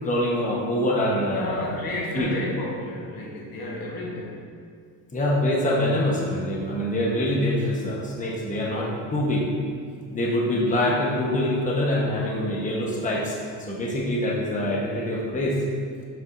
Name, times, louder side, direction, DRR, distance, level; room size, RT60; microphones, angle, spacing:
voice 1, 0.0-1.7 2.1-2.3 5.1-9.5 10.1-15.6, left 1 dB, 20° left, -4 dB, 1.1 m, -25 dB
voice 2, 1.3-4.5, left 1 dB, 65° left, -2 dB, 1.4 m, -32 dB
7.8 x 5.5 x 2.6 m, 2.2 s
cardioid pair, 105°, 38 cm